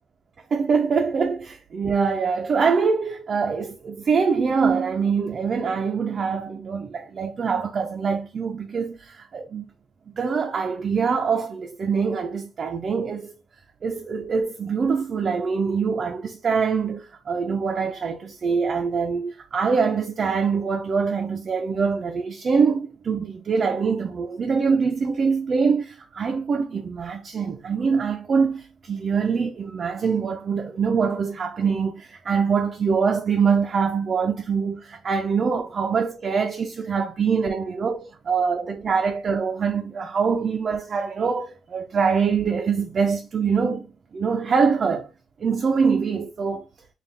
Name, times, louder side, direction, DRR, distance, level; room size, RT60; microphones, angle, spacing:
voice 1, 0.5-9.7 10.1-13.3 13.8-45.1 45.4-46.6, right 5 dB, 35° right, 0.4 m, -24 dB
4.0 x 2.3 x 3.3 m
cardioid pair, 150°, 0 cm